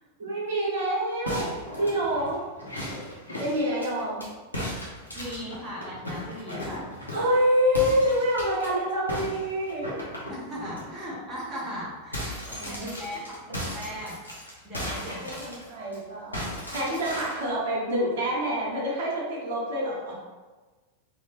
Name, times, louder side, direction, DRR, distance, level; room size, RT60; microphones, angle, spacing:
voice 1, 0.2-1.5 1.8-2.4 3.4-4.2 7.1-9.8 12.6-12.9 15.2-16.4 16.7-20.1, equal, 55° right, -5 dB, 1.1 m, -26 dB
sound 1, 1.3-4.3 4.5-7.4 7.7-8.7 9.1-10.8 11.3-11.4 11.7-16.0 16.3-17.5, equal, 85° left, 0.9 m, -36 dB
voice 2, 5.1-6.9 10.3-14.2 14.6-15.4, equal, 20° right, -6 dB, 1.1 m, -38 dB
3.8 x 2.8 x 3.1 m, 1.3 s
figure-of-eight pair, 90°, 0 cm